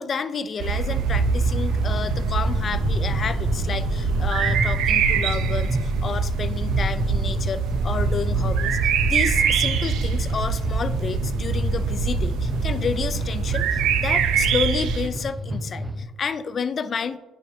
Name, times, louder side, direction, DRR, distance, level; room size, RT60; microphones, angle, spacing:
voice 1, 0.0-17.2, left 5 dB, 40° left, 13 dB, 0.4 m, -30 dB
sound 1, 0.6-15.1, right 6 dB, 80° right, 0.6 m, -24 dB
sound 2, 0.9-16.0, equal, 10° right, 0.7 m, -30 dB
9.7 x 4.8 x 2.7 m, 1.1 s
cardioid pair, 95°, 0 cm